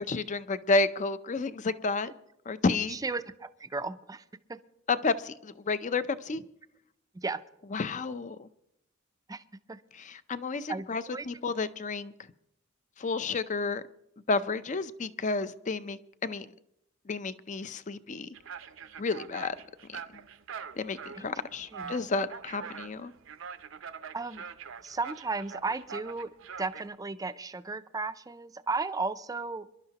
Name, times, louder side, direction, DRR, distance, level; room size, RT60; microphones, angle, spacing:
voice 1, 0.0-2.1 2.5-3.0 4.9-6.4 7.7-8.5 9.9-12.1 13.0-13.8 14.3-16.5 17.1-18.3 19.0-19.6 19.9-20.0 20.8-23.1, left 3 dB, 35° left, 0.5 m, -31 dB
voice 2, 2.9-4.2 4.5-4.6 7.1-7.4 9.3-9.4 9.7-9.8 10.7-11.3 21.1-21.2 21.7-21.9 24.1-24.4 24.8-26.3 26.6-29.7, right 3 dB, 20° right, 0.5 m, -34 dB
sound 1, 18.3-26.9, right 6 dB, 70° right, 0.6 m, -44 dB
26.5 x 11.5 x 2.9 m
head